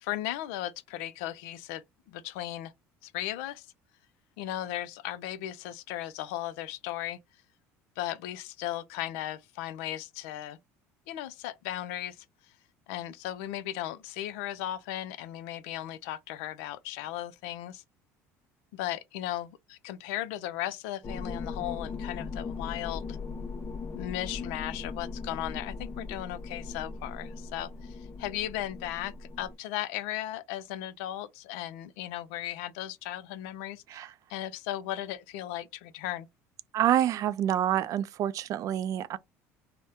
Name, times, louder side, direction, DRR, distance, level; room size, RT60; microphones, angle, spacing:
voice 1, 0.0-2.7 3.0-3.7 4.4-7.2 8.0-10.6 11.1-12.2 12.9-17.8 18.7-23.2 23.9-34.0 34.3-36.3, left 13 dB, 85° left, 0.4 m, -36 dB
sound 1, 21.0-29.6, left 4 dB, 35° left, 0.6 m, -39 dB
voice 2, 36.7-39.2, right 11 dB, 55° right, 0.3 m, -27 dB
2.7 x 2.1 x 3.4 m
supercardioid pair, 90°, 7 cm